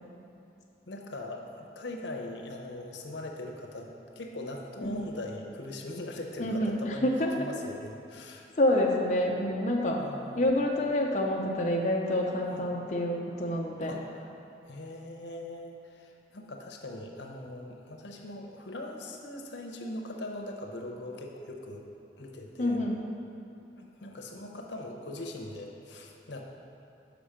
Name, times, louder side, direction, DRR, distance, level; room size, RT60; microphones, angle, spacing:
voice 1, 0.9-7.1 7.4-8.5 10.0-10.4 12.5-12.7 13.8-14.4 14.7-21.8 22.2-22.9 23.8-26.4, left 1 dB, 85° left, 1 dB, 0.8 m, -41 dB
voice 2, 6.4-7.3 8.6-10.0 10.4-13.9 22.6-23.0, left 1 dB, 40° left, -2 dB, 0.6 m, -27 dB
6.9 x 5.2 x 5.0 m, 2.7 s
head